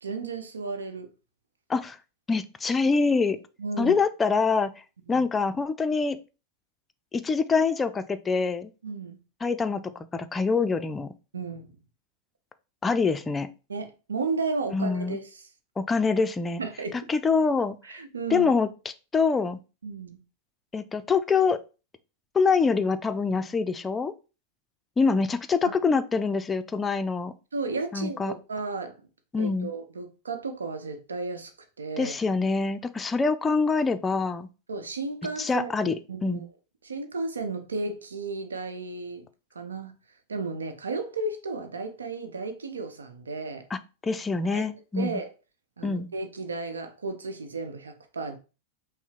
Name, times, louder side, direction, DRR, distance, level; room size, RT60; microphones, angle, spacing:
voice 1, 0.0-1.1 3.6-3.9 5.1-5.3 8.8-9.2 11.3-11.8 13.7-15.4 16.6-17.0 17.8-18.5 19.8-20.2 25.6-25.7 27.5-28.9 29.4-31.5 31.8-32.1 34.7-36.4 36.8-39.3 39.5-39.9 40.3-43.6 44.5-44.7 44.9-45.3 45.8-48.4, right 3 dB, 70° right, 0.8 m, -33 dB
voice 2, 2.3-3.4 3.8-4.7 5.1-6.2 7.1-8.7 9.4-9.8 10.1-11.1 12.8-13.5 14.7-15.2 15.8-16.6 16.9-17.8 18.3-18.7 19.1-19.6 20.7-21.6 22.3-24.1 25.0-27.3 27.9-28.3 29.3-29.7 32.0-34.5 35.4-35.9 36.2-36.4 43.7-45.2 45.8-46.1, left 4 dB, 15° left, 0.4 m, -25 dB
5.6 x 2.1 x 4.4 m
figure-of-eight pair, 90°, 0 cm